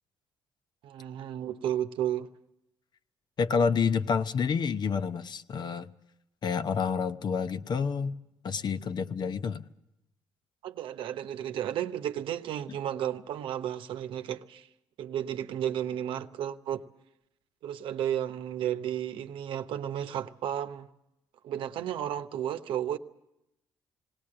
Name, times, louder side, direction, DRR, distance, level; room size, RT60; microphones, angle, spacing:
voice 1, 0.8-2.3 10.6-14.7 15.0-16.8 17.6-20.9 21.4-23.0, right 10 dB, 75° right, 0.8 m, -33 dB
voice 2, 3.4-5.9 6.4-8.2 8.4-9.6 12.7-12.8, left 6 dB, 55° left, 0.8 m, -28 dB
19.0 x 18.5 x 8.8 m
supercardioid pair, 70°, 9 cm